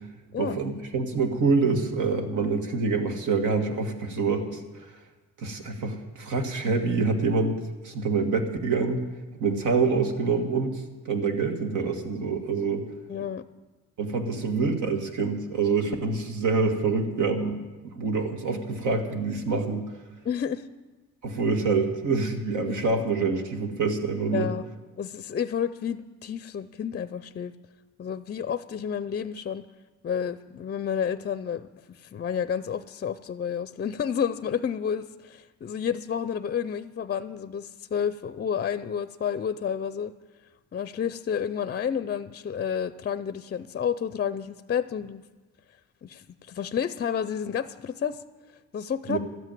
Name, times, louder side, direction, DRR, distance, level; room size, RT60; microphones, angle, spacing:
voice 1, 0.4-4.6 5.4-9.0 9.4-12.9 14.0-19.9 21.2-24.5 49.1-49.2, right 4 dB, 80° right, 5 dB, 1.8 m, -26 dB
voice 2, 13.1-13.4 20.2-20.7 22.7-22.8 24.3-24.6 25.0-27.5 28.0-29.7 30.0-40.1 40.7-45.2 46.0-48.2 48.7-49.2, left 8 dB, 35° left, 14 dB, 0.5 m, -30 dB
13.0 x 8.2 x 9.2 m, 1.2 s
cardioid pair, 90°, 30 cm